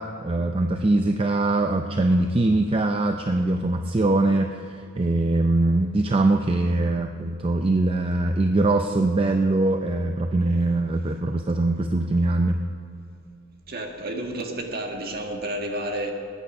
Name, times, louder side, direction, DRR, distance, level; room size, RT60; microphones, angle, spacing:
voice 1, 0.0-12.6, right 2 dB, 25° right, 5 dB, 0.5 m, -22 dB
voice 2, 13.7-16.1, right 1 dB, 45° right, 2 dB, 1.6 m, -30 dB
20.0 x 9.2 x 5.3 m, 2.6 s
head